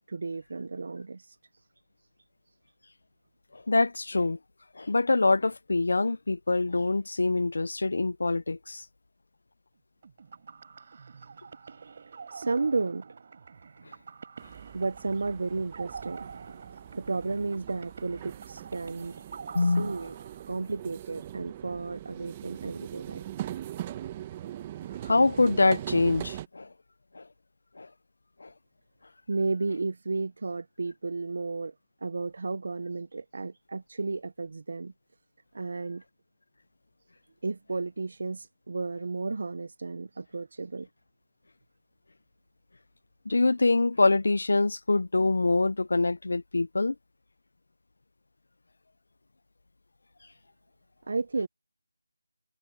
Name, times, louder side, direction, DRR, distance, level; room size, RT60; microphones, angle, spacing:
voice 1, 0.1-1.4 12.3-13.0 14.7-16.2 16.9-19.2 19.6-20.1 20.5-23.3 29.3-31.7 32.0-34.9 35.5-36.0 37.4-40.9 51.1-51.5, right 3 dB, 50° right, 0.8 m, -33 dB
voice 2, 3.5-4.4 4.8-8.8 19.5-19.9 25.0-26.7 27.1-27.2 27.8-27.9 28.4-28.5 43.3-46.9, left 3 dB, 60° left, 0.5 m, -25 dB
sound 1, 10.0-20.9, right 5 dB, 35° right, 7.2 m, -46 dB
sound 2, 14.4-26.5, right 12 dB, 15° right, 1.1 m, -41 dB
figure-of-eight pair, 170°, 0 cm